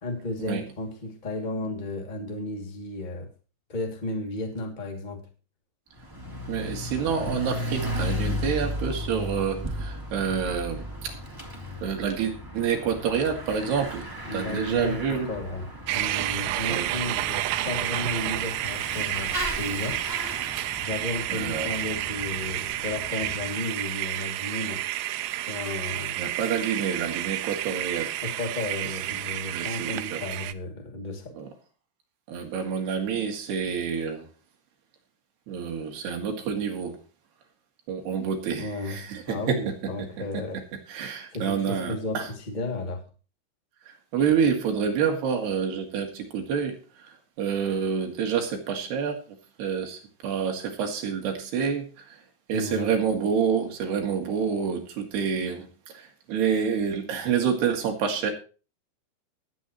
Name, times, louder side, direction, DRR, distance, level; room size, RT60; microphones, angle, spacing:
voice 1, 0.0-3.3 3.7-5.3 14.2-20.0 20.8-24.8 25.3-26.2 28.2-31.3 38.6-40.6 41.3-43.1 52.5-52.9, left 2 dB, 20° left, 1.1 m, -33 dB
Bicycle / Mechanisms, 6.0-23.6, equal, 10° right, 0.9 m, -35 dB
voice 2, 6.5-11.2 11.8-14.1 14.3-15.3 16.7-17.0 21.3-21.7 26.2-28.1 29.5-30.2 31.4-31.5 32.3-34.3 35.5-37.0 37.9-40.1 40.3-40.4 40.9-42.3 44.1-46.8 47.0-49.2 49.6-52.2 52.5-58.3, right 7 dB, 60° right, 4.1 m, -28 dB
sound 1, 15.9-30.5, right 15 dB, 80° right, 3.0 m, -30 dB
20.5 x 8.6 x 3.1 m
omnidirectional pair, 5.5 m